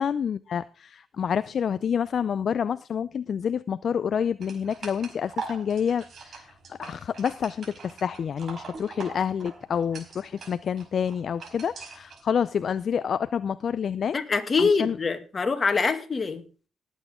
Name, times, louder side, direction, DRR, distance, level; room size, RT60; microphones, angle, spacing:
voice 1, 0.0-14.2 14.6-15.0, left 7 dB, 55° left, 15 dB, 0.5 m, -28 dB
sound 1, 4.4-12.2, right 5 dB, 50° right, 4.9 m, -42 dB
voice 2, 14.1-16.4, left 4 dB, 35° left, 7 dB, 2.0 m, -24 dB
18.5 x 8.4 x 3.7 m, 0.37 s
cardioid pair, 90°, 0 cm